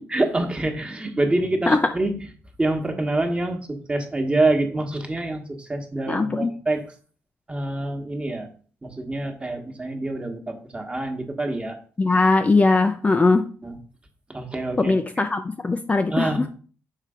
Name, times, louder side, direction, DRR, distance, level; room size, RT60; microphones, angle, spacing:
voice 1, 0.1-2.1 2.6-6.8 7.5-8.5 8.8-11.8 13.6-13.8 14.3-14.9 16.1-16.5, right 2 dB, 20° right, 4 dB, 1.3 m, -26 dB
voice 2, 6.1-6.5 12.0-13.5 14.8-16.5, left 3 dB, 25° left, 7 dB, 0.4 m, -20 dB
6.6 x 3.2 x 5.0 m, 0.42 s
cardioid pair, 95°, 6 cm